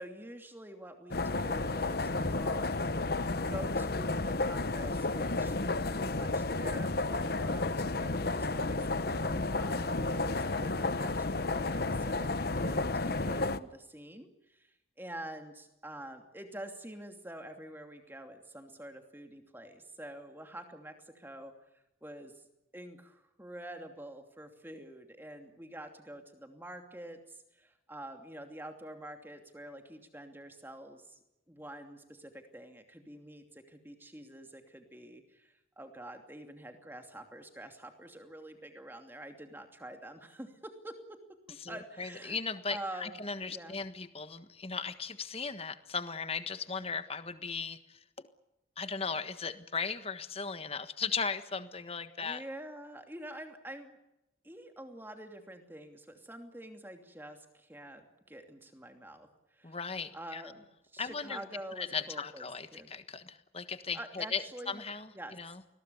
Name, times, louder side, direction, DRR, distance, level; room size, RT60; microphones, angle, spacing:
voice 1, 0.0-2.8 3.5-22.4 22.7-31.2 31.5-41.2 41.5-42.4 42.7-43.2 43.5-43.8 52.2-54.0 54.4-59.8 60.1-62.9 63.9-64.8 65.1-65.7, right 1 dB, 10° right, 5 dB, 2.7 m, -47 dB
sound 1, 1.1-13.6, left 2 dB, 50° left, 1.0 m, -32 dB
voice 2, 41.6-48.0 48.8-52.4 59.6-60.4 61.0-61.4 61.8-65.6, left 5 dB, 30° left, 11 dB, 1.4 m, -37 dB
29.0 x 21.5 x 7.0 m, 0.94 s
head